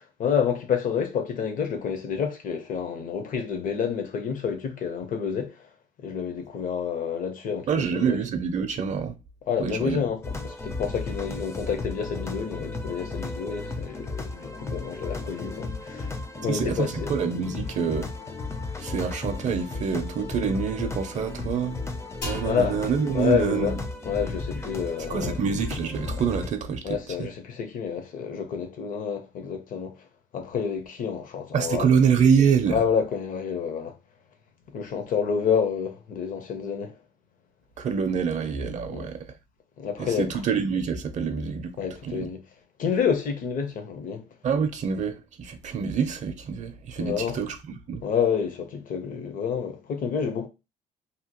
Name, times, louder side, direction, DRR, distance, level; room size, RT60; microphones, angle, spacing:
voice 1, 0.0-5.6 6.0-8.2 9.5-16.1 16.4-17.1 22.4-22.8 23.1-23.8 24.1-25.4 26.8-29.9 30.3-31.9 32.7-33.9 34.7-36.9 38.9-39.1 39.8-40.3 41.8-42.4 42.8-44.2 47.0-47.4 48.0-50.5, left 7 dB, 50° left, 0.7 m, -28 dB
voice 2, 7.7-9.1 9.6-10.0 16.5-18.1 18.8-21.8 22.2-23.8 25.1-27.3 31.5-32.8 37.8-39.3 40.0-41.8 42.0-42.3 44.4-47.6 47.9-48.0, right 6 dB, 45° right, 0.5 m, -26 dB
sound 1, 10.2-26.5, left 3 dB, 15° left, 0.4 m, -34 dB
sound 2, 22.2-25.8, equal, 80° left, 1.2 m, -43 dB
2.8 x 2.2 x 2.8 m
cardioid pair, 110°, 17 cm